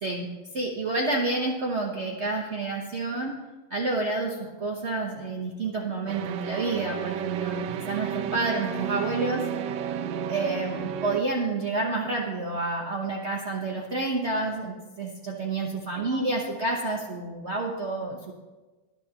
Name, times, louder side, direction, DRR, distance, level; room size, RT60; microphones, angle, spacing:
voice 1, 0.0-3.3 3.7-9.4 10.3-18.3, right 2 dB, 45° right, -1 dB, 1.0 m, -29 dB
sound 1, 6.1-11.2, right 8 dB, 75° right, 1.1 m, -32 dB
18.5 x 10.5 x 2.9 m, 1.2 s
omnidirectional pair, 2.2 m